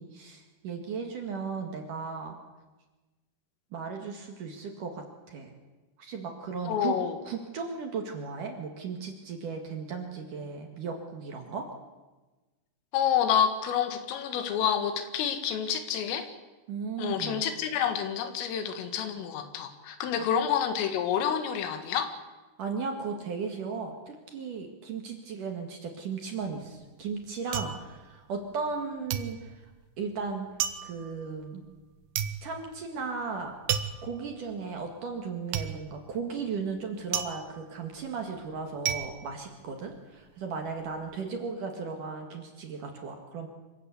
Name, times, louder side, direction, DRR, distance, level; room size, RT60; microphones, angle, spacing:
voice 1, 0.0-2.4 3.7-5.5 6.0-6.9 7.3-11.7 16.7-17.4 20.2-20.3 22.6-29.6 30.0-30.5 30.8-31.6 32.4-33.5 34.0-43.5, right 5 dB, 55° right, 3 dB, 2.7 m, -36 dB
voice 2, 6.6-7.2 12.9-16.3 17.0-22.1, left 8 dB, 85° left, 8 dB, 4.4 m, -28 dB
sound 1, 26.4-28.8 29.1-40.2 40.5-41.1, right 9 dB, 90° right, 1.9 m, -35 dB
25.0 x 16.5 x 8.3 m, 1.2 s
omnidirectional pair, 5.7 m